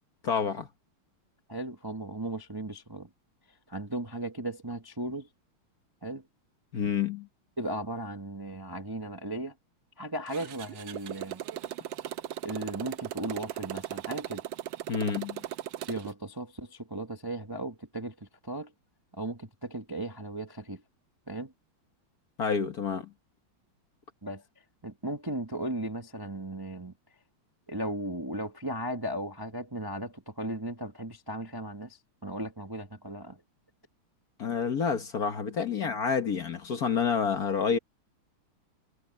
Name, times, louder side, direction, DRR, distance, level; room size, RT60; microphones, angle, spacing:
voice 1, 0.2-0.7 6.7-7.3 14.9-15.4 22.4-23.1 34.4-37.8, left 6 dB, 50° left, 1.5 m, -28 dB
voice 2, 1.5-3.1 3.7-5.3 6.0-6.2 7.6-9.5 10.0-11.4 12.4-14.4 15.9-18.7 19.1-20.8 21.3-21.5 24.2-24.4 24.8-26.9 27.7-33.4, right 1 dB, 15° right, 0.9 m, -36 dB
Motorcycle, 10.3-16.1, right 12 dB, 65° right, 1.3 m, -38 dB
omnidirectional pair, 2.4 m